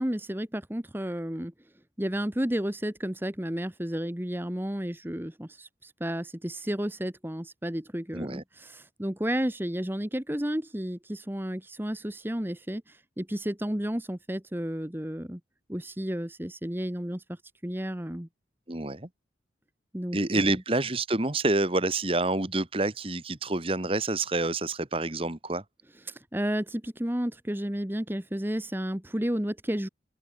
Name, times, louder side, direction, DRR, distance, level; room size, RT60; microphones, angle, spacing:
voice 1, 0.0-1.5 2.0-15.4 15.7-18.3 19.9-20.6 26.0-29.9, equal, 10° right, 1.2 m, -32 dB
voice 2, 8.1-8.4 18.7-19.1 20.1-25.6, right 2 dB, 30° right, 1.5 m, -28 dB
head